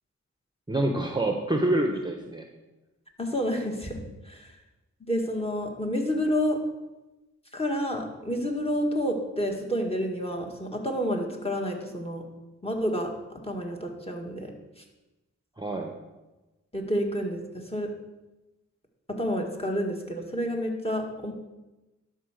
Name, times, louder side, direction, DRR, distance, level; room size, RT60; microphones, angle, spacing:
voice 1, 0.7-2.5 15.6-15.9, right 1 dB, 15° right, 2 dB, 0.9 m, -26 dB
voice 2, 3.2-4.6 5.0-6.6 7.5-12.2 12.6-13.1 13.4-14.5 14.8-14.9 16.7-17.9 19.1-21.3, equal, 20° left, 2 dB, 1.7 m, -29 dB
11.0 x 4.6 x 6.5 m, 1.1 s
wide cardioid pair, 75°, 31 cm